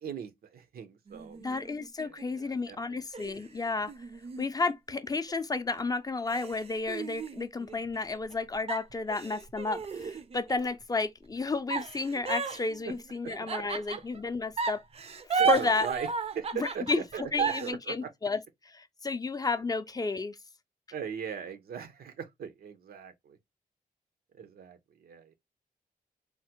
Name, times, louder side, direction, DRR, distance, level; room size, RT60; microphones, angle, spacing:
voice 1, 0.0-1.7 2.0-3.0 3.3-3.5 12.8-12.9 13.2-13.7 15.4-16.1 16.3-18.1 20.9-23.4 24.3-25.4, right 7 dB, 90° right, 0.6 m, -40 dB
sound 1, 1.1-2.4 3.1-5.3 5.8-5.9 6.3-8.3 8.7-10.7 11.7-14.2 14.6-17.7, right 5 dB, 40° right, 0.4 m, -34 dB
voice 2, 1.4-3.9 4.4-14.8 15.3-15.9 16.5-17.0 17.3-18.4 18.7-20.4, left 3 dB, 25° left, 0.4 m, -32 dB
3.4 x 2.0 x 2.8 m
cardioid pair, 85°, 15 cm